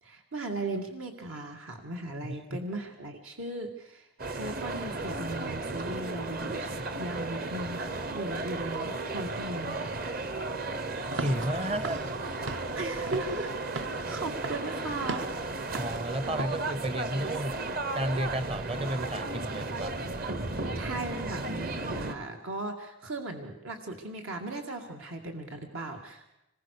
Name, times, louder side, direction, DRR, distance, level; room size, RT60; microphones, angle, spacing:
voice 1, 0.0-10.0 12.8-13.5 14.1-15.7 20.7-26.3, right 2 dB, 80° right, 2 dB, 2.4 m, -37 dB
voice 2, 2.2-2.6 11.2-12.0 15.7-17.6 17.9-19.9, right 1 dB, 30° right, 15 dB, 0.8 m, -33 dB
sound 1, 4.2-22.2, right 2 dB, 45° right, 1.2 m, -34 dB
Walk footsteps / Siren, 11.0-16.6, right 3 dB, 60° right, 1.0 m, -39 dB
25.5 x 21.0 x 6.8 m, 0.87 s
head